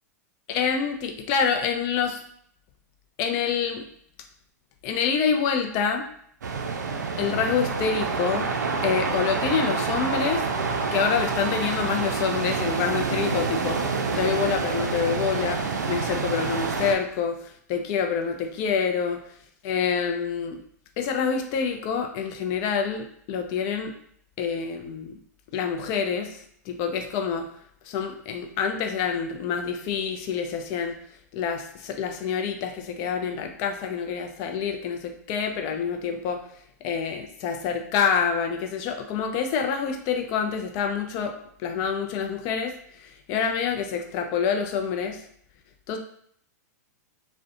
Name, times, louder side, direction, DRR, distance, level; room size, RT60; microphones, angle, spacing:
voice 1, 0.5-2.2 3.2-3.9 4.8-6.1 7.2-8.5 8.8-10.4 10.9-13.8 14.1-19.2 19.6-20.6 21.0-23.9 24.4-25.2 25.5-26.4 26.7-27.5 27.9-31.0 31.3-36.4 36.8-41.3 41.6-45.2 45.9-46.0, left 6 dB, 40° left, 5 dB, 0.4 m, -27 dB
sound 1, 6.4-16.9, right 4 dB, 90° right, 0.4 m, -27 dB
2.4 x 2.1 x 2.6 m, 0.66 s
hypercardioid pair, 115°, 9 cm